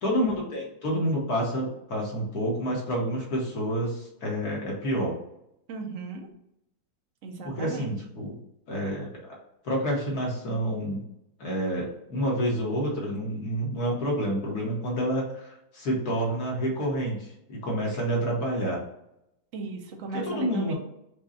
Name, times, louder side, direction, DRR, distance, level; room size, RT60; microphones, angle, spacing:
voice 1, 0.0-5.2 7.4-8.4 8.7-9.3 9.6-11.0 11.4-18.8 20.1-20.7, equal, 55° left, -2 dB, 1.5 m, -28 dB
voice 2, 5.7-6.3 7.2-7.9 19.5-20.7, right 3 dB, 65° right, 2 dB, 0.8 m, -36 dB
5.0 x 2.3 x 4.1 m, 0.82 s
omnidirectional pair, 2.2 m